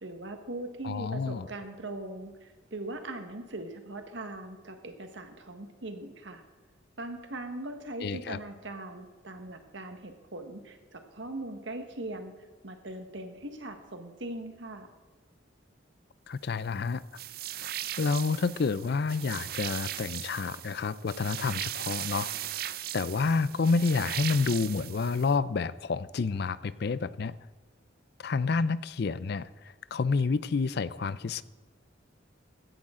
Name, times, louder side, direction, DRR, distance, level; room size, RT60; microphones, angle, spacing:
voice 1, 0.0-6.4 7.0-12.3 12.6-14.9, right 2 dB, 70° right, 1.4 m, -40 dB
voice 2, 0.8-1.5 8.0-8.4 16.3-17.0 17.6-17.7 18.0-27.3 28.2-31.4, left 4 dB, 55° left, 0.4 m, -29 dB
sound 1, 17.2-25.3, right 12 dB, 50° right, 0.4 m, -38 dB
16.0 x 11.5 x 3.7 m
head